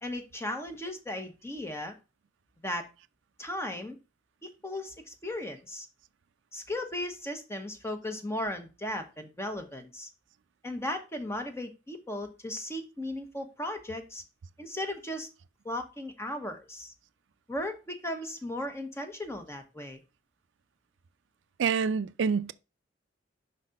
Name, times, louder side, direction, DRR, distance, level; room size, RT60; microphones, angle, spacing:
voice 1, 0.0-1.9 2.6-2.8 3.4-4.0 4.4-5.9 6.5-10.1 10.6-14.2 14.6-15.3 15.6-16.9 17.5-20.0, left 1 dB, 15° left, 1.0 m, -36 dB
voice 2, 21.6-22.5, right 6 dB, 85° right, 0.4 m, -27 dB
5.6 x 4.1 x 5.1 m
head